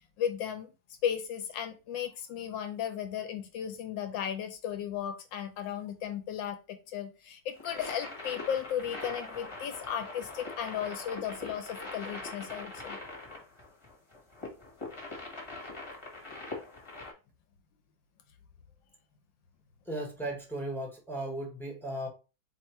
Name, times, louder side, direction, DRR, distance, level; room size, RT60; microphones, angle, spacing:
voice 1, 0.2-0.7 1.0-13.0, left 9 dB, 75° left, 1.2 m, -35 dB
sound 1, 7.6-17.1, left 2 dB, 20° left, 1.0 m, -42 dB
voice 2, 19.9-22.1, right 1 dB, ahead, 0.5 m, -36 dB
4.3 x 2.8 x 4.3 m
omnidirectional pair, 2.2 m